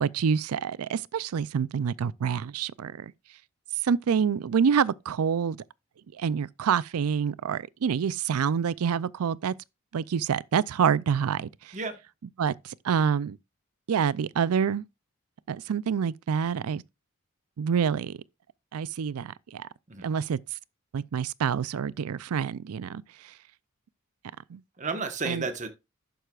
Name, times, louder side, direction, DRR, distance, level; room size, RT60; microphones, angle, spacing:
voice 1, 0.0-3.1 3.8-5.6 6.2-9.5 9.9-11.8 12.4-13.4 13.9-14.8 15.5-16.8 17.6-18.2 18.7-19.7 20.0-20.4 20.9-23.3 24.5-24.6 25.3-25.4, right 7 dB, 85° right, 0.4 m, -27 dB
voice 2, 24.8-25.7, right 4 dB, 35° right, 1.3 m, -32 dB
11.5 x 7.8 x 2.4 m
head